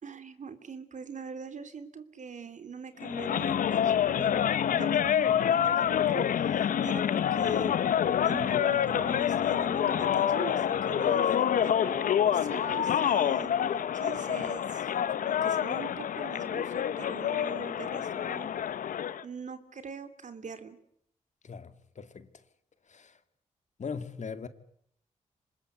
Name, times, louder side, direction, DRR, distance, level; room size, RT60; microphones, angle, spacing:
voice 1, 0.0-7.7 8.2-14.9 15.2-18.5 19.2-20.8, right 6 dB, 65° right, 3.0 m, -43 dB
sound 1, 3.0-19.2, left 9 dB, 90° left, 1.0 m, -27 dB
voice 2, 21.4-22.4 22.9-23.2 23.8-24.5, left 5 dB, 60° left, 2.3 m, -40 dB
26.0 x 20.5 x 8.3 m
cardioid pair, 55°, 13 cm